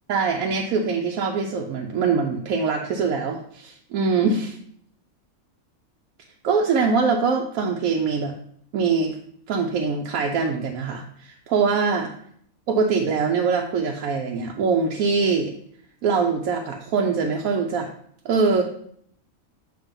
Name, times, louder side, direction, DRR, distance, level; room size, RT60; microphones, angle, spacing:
voice 1, 0.1-4.5 6.4-8.3 8.7-9.2 9.5-12.1 12.7-15.5 16.0-17.9 18.2-18.6, right 5 dB, 80° right, 1 dB, 1.0 m, -23 dB
7.2 x 2.9 x 5.2 m, 0.64 s
omnidirectional pair, 1.5 m